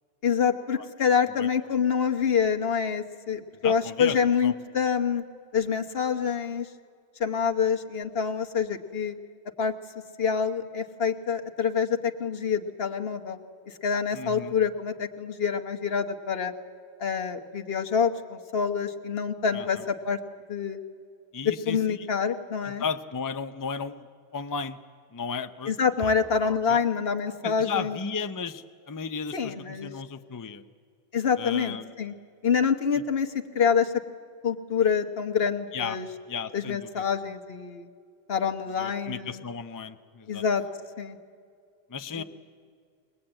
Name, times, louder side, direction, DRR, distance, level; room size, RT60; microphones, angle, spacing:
voice 1, 0.2-5.2 5.5-6.7 7.2-9.1 9.6-9.7 10.2-13.4 13.7-16.5 17.0-20.2 20.5-20.8 21.4-22.8 25.7-28.0 29.3-29.9 31.1-32.1 32.4-34.0 34.4-36.1 36.5-37.9 38.3-39.4 40.3-40.6 41.0-41.2 42.1-42.2, left 6 dB, 65° left, 6 dB, 1.3 m, -26 dB
voice 2, 3.6-4.2 4.4-4.5 14.1-14.5 19.5-19.8 21.3-22.1 22.8-24.1 24.3-24.8 25.1-25.8 26.0-26.1 26.4-26.8 27.4-30.6 31.4-31.9 35.7-36.0 36.3-37.0 38.8-40.4 41.9-42.2, left 5 dB, 25° left, 9 dB, 0.5 m, -34 dB
21.5 x 20.5 x 8.8 m, 2.2 s
omnidirectional pair, 1.1 m